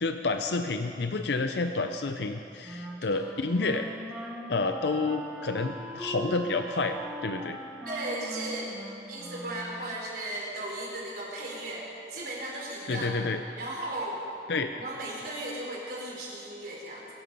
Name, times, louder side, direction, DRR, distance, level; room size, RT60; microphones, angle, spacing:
voice 1, 0.0-3.9 4.5-7.6 12.9-13.4 14.5-14.7, left 3 dB, 70° left, 7 dB, 0.6 m, -29 dB
Wind instrument woodwind instrument, 2.6-10.0, right 1 dB, 5° right, 1.8 m, -40 dB
voice 2, 7.8-8.7 9.1-13.3 13.6-14.3 14.7-17.1, right 1 dB, 55° right, -3 dB, 4.2 m, -36 dB
23.5 x 11.0 x 5.5 m, 2.7 s
head